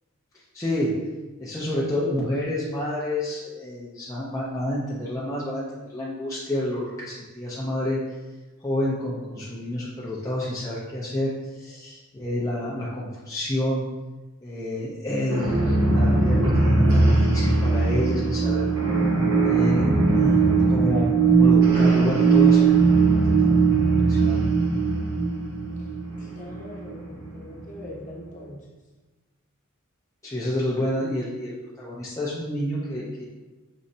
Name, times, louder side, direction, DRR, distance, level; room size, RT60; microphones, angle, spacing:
voice 1, 0.5-1.0 1.4-8.0 8.6-13.9 14.4-18.7 19.4-20.4 20.7-22.8 23.3-23.6 24.0-24.4 30.2-33.2, left 1 dB, 15° left, -7 dB, 0.5 m, -29 dB
sound 1, 15.3-27.8, right 4 dB, 80° right, 0.9 m, -20 dB
voice 2, 26.2-28.6, left 1 dB, 40° left, -3 dB, 1.0 m, -41 dB
5.3 x 3.1 x 2.6 m, 1.2 s
head